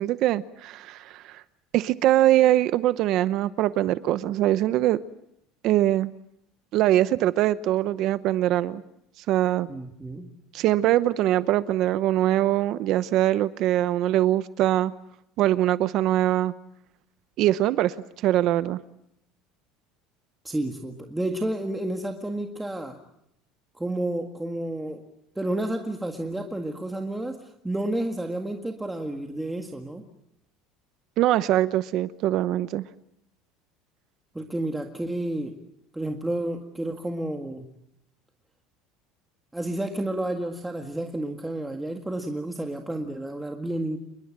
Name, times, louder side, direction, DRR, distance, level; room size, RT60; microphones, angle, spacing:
voice 1, 0.0-1.4 1.7-5.0 5.6-6.1 6.7-8.8 9.3-9.7 10.5-14.9 15.4-16.5 17.4-17.9 18.2-18.8 31.2-32.8, right 14 dB, 45° right, 15 dB, 0.9 m, -22 dB
voice 2, 9.7-10.3 20.4-23.0 23.7-25.0 25.4-30.0 34.3-35.6 35.9-37.7 39.5-44.0, right 1 dB, 5° right, 4 dB, 1.9 m, -30 dB
28.5 x 22.0 x 7.5 m, 0.77 s
cardioid pair, 160°, 0 cm